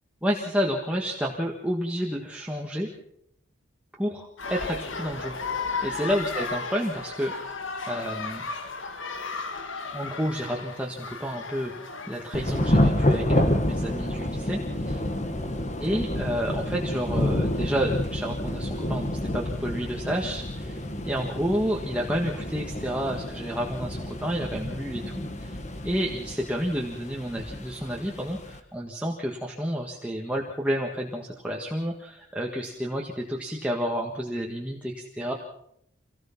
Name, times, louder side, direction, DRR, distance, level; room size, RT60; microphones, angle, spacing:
voice 1, 0.2-2.9 4.0-5.3 5.8-7.3 7.9-8.5 9.9-11.7 12.1-14.6 14.9-15.0 15.8-25.1 25.4-35.3, equal, 5° right, -2 dB, 1.6 m, -30 dB
sound 1, 4.4-12.7, left 4 dB, 75° left, 1.8 m, -34 dB
Thunder / Rain, 12.3-28.6, left 1 dB, 35° left, 1.5 m, -29 dB
25.5 x 17.5 x 5.9 m, 0.74 s
head